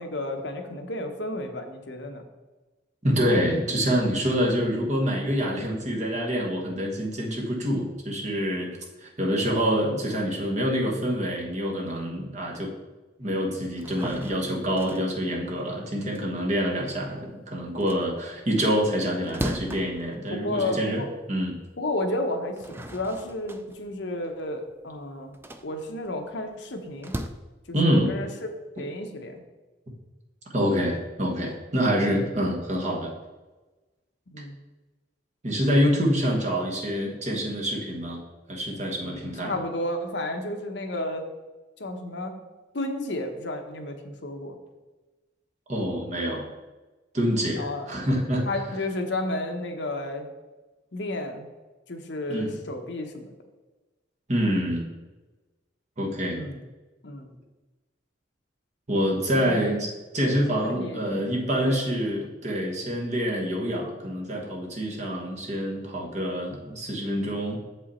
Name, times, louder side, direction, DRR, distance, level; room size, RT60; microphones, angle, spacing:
voice 1, 0.0-2.2 20.3-21.1 21.8-27.1 27.7-28.3 28.8-29.4 34.3-34.6 39.0-41.3 41.8-42.4 42.7-44.6 47.6-47.9 48.4-50.3 50.9-51.5 51.9-53.3 56.3-56.6 57.0-57.3 59.3-59.8 60.6-61.0 61.6-61.9, left 1 dB, 65° left, 5 dB, 0.8 m, -32 dB
voice 2, 3.0-8.7 9.0-12.7 13.2-21.0 21.3-21.5 27.7-28.1 30.5-33.1 35.4-38.2 38.5-39.5 45.7-46.5 47.1-48.5 52.3-52.5 54.3-54.9 56.0-56.4 58.9-67.6, equal, 35° right, -1 dB, 1.3 m, -26 dB
sound 1, 13.7-17.3 17.6-21.2 21.6-21.7 22.3-27.3, right 1 dB, 10° right, 0.3 m, -38 dB
7.2 x 5.4 x 4.2 m, 1.2 s
head